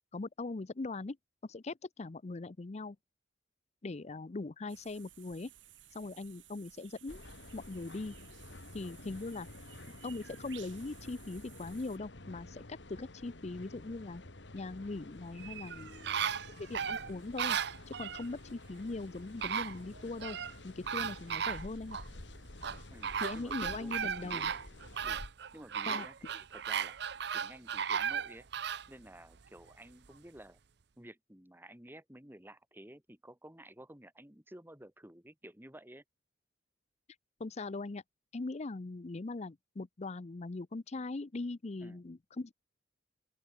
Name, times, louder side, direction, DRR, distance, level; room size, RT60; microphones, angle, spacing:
voice 1, 0.1-1.2 1.4-3.0 3.8-5.5 5.9-7.2 7.5-8.2 8.7-9.5 10.0-12.6 12.9-14.2 14.5-16.2 16.6-17.6 17.9-20.4 20.6-22.0 23.2-24.5 25.9-26.1 37.4-38.0 38.3-42.5, left 3 dB, 35° left, 0.6 m, -40 dB
sound 1, 4.7-12.0, right 12 dB, 90° right, 3.2 m, -57 dB
sound 2, 7.1-25.3, left 2 dB, 70° left, 2.0 m, -51 dB
sound 3, 15.4-18.3 19.0-19.1 19.4-20.5 20.9-22.1 22.6-28.9 29.3-29.4, right 7 dB, 65° right, 0.7 m, -36 dB
voice 2, 22.9-23.9 24.2-24.6 25.0-25.2 25.5-27.0 27.3-28.5 28.9-30.6 31.0-36.0 41.8-42.0, right 1 dB, 10° right, 2.8 m, -53 dB
open air
head